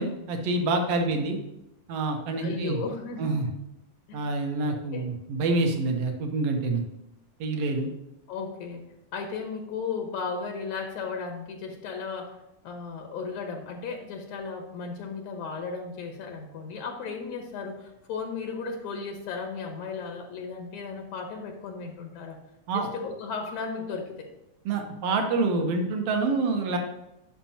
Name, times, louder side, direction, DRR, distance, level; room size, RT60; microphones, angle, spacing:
voice 1, 0.0-1.4 1.9-2.8 3.2-3.5 4.1-6.8 7.4-7.9 22.7-22.9 24.7-26.8, right 3 dB, 60° right, 4 dB, 2.0 m, -27 dB
voice 2, 2.4-3.4 4.1-4.2 4.7-5.1 8.3-12.4 12.6-22.4 22.7-24.3, left 5 dB, 75° left, 3 dB, 2.3 m, -35 dB
13.0 x 5.9 x 2.9 m, 0.91 s
omnidirectional pair, 3.4 m